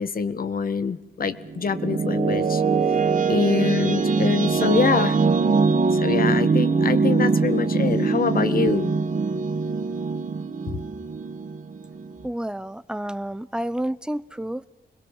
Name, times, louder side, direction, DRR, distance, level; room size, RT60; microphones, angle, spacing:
voice 1, 0.0-2.6 3.3-5.2 5.9-8.9, left 5 dB, 65° left, 12 dB, 1.6 m, -25 dB
sound 1, 1.2-12.3, right 4 dB, 55° right, 1.9 m, -22 dB
voice 2, 12.2-14.7, right 1 dB, 5° right, 14 dB, 1.0 m, -30 dB
26.5 x 21.5 x 7.4 m, 0.93 s
cardioid pair, 85°, 16 cm